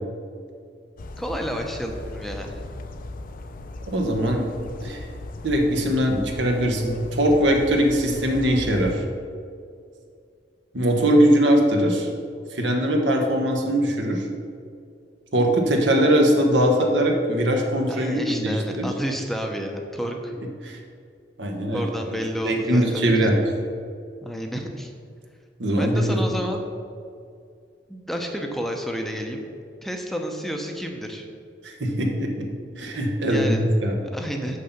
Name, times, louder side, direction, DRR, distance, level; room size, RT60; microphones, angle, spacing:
sound 1, 1.0-9.0, left 2 dB, 50° left, 0.5 m, -37 dB
voice 1, 1.2-2.6 17.9-20.3 21.7-23.3 24.2-24.9 25.8-26.6 27.9-29.4 29.8-31.3 33.3-33.7 34.1-34.6, equal, ahead, 2 dB, 0.6 m, -30 dB
voice 2, 3.9-4.4 4.8-5.0 5.4-9.0 10.7-12.1 12.5-14.2 15.3-18.9 20.6-20.8 21.4-21.9 22.4-23.3 25.6-26.2 31.6-32.5 32.8-33.9, equal, 80° right, 2 dB, 1.3 m, -21 dB
6.5 x 5.5 x 6.9 m, 2.3 s
head